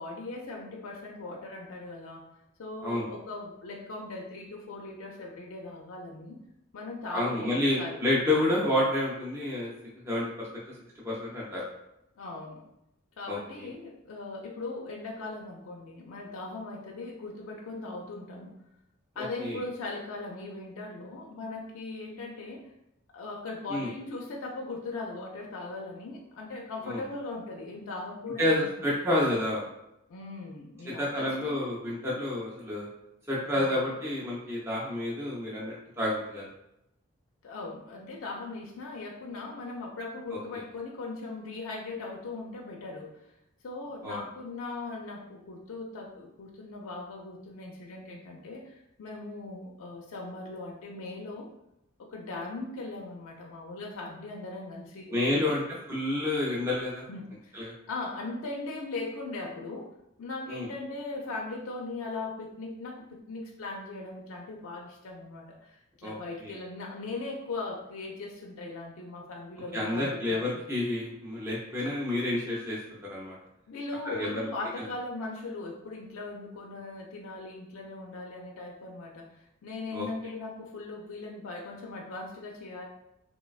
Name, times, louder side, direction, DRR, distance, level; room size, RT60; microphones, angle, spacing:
voice 1, 0.0-2.3 2.6-6.4 6.7-8.0 12.2-12.6 13.2-18.6 19.2-22.7 23.1-28.9 30.1-31.7 33.5-33.9 37.4-43.2 43.6-51.5 52.0-55.6 57.1-59.9 60.2-70.6 73.7-82.8, left 3 dB, 85° left, -1 dB, 0.4 m, -39 dB
voice 2, 7.1-9.7 10.0-10.5 11.0-11.6 13.3-13.7 19.2-19.6 23.7-23.9 26.8-27.0 28.4-29.6 31.0-32.9 33.3-36.5 44.0-44.2 55.1-55.6 55.9-57.0 57.5-57.7 60.5-60.7 66.0-66.6 69.7-73.4 74.0-74.5 79.9-80.1, left 1 dB, 10° right, -6 dB, 0.4 m, -29 dB
3.1 x 2.1 x 2.3 m, 0.84 s
head